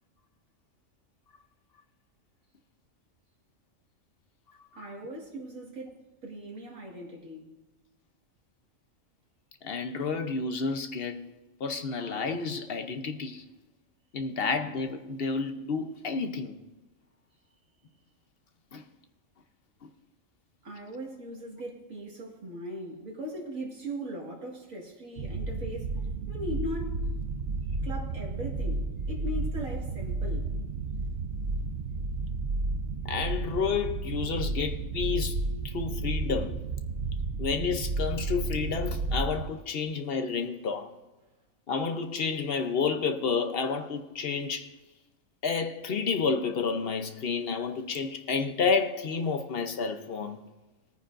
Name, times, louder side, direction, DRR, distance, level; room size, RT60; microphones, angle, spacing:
voice 1, 4.7-7.6 20.6-27.1 27.8-30.5, equal, 90° right, 2.3 m, -39 dB
voice 2, 9.6-11.2 11.6-13.4 14.1-16.6 18.7-18.8 33.1-35.4 35.6-36.6 37.4-40.9 41.7-44.7 45.4-50.4, left 5 dB, 55° left, 0.9 m, -30 dB
sound 1, 25.2-39.5, right 3 dB, 60° right, 0.7 m, -32 dB
20.0 x 9.3 x 2.5 m
omnidirectional pair, 1.4 m